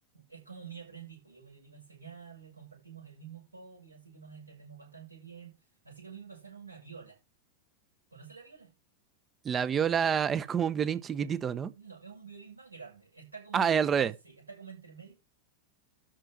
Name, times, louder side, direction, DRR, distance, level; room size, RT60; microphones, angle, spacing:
voice 1, 0.1-5.5 5.8-7.2 8.1-8.7 11.7-15.1, right 6 dB, 80° right, 6.6 m, -49 dB
voice 2, 9.4-11.7 13.5-14.1, right 7 dB, 25° right, 0.9 m, -27 dB
12.5 x 4.6 x 6.1 m
figure-of-eight pair, 90°, 0 cm